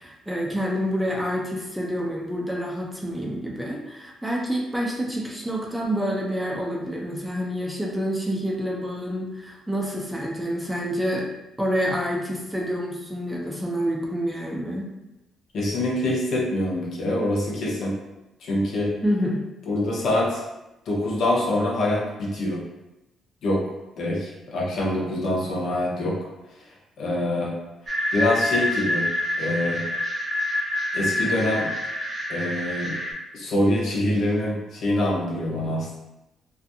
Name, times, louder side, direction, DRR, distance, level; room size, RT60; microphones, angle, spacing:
voice 1, 0.0-11.3 11.6-14.9 19.0-19.4, equal, 5° right, -2 dB, 0.5 m, -28 dB
voice 2, 15.5-17.9 18.4-18.9 19.7-20.4 20.9-22.6 23.4-26.2 27.0-27.5 28.1-29.1 29.4-29.9 30.9-31.7 32.3-33.0 33.3-35.9, left 1 dB, 65° left, -4 dB, 0.8 m, -25 dB
sound 1, 27.9-33.1, left 1 dB, 45° right, 0.6 m, -27 dB
2.5 x 2.3 x 2.7 m, 0.94 s
cardioid pair, 90°, 0 cm